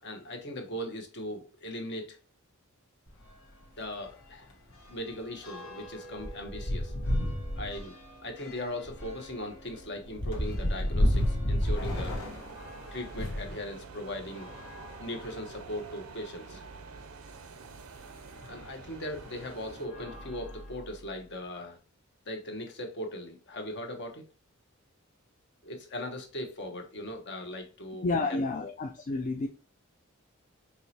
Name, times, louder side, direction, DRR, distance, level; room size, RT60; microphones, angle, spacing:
voice 1, 0.0-2.2 3.8-4.5 4.9-6.9 7.6-7.9 8.2-12.2 12.9-14.5 15.0-16.6 18.5-21.8 22.3-24.3 25.6-28.7, left 1 dB, 55° left, 1.0 m, -39 dB
sound 1, 3.1-3.2 3.6-3.7 4.1-13.5 14.3-15.6 16.3-16.4 16.6-16.7 18.4-18.6 19.2-19.4 19.8-21.1, equal, 80° left, 1.3 m, -33 dB
sound 2, 11.6-19.9, right 4 dB, 85° right, 0.6 m, -47 dB
voice 2, 28.0-29.5, left 3 dB, 35° left, 0.4 m, -30 dB
4.6 x 2.9 x 2.8 m
head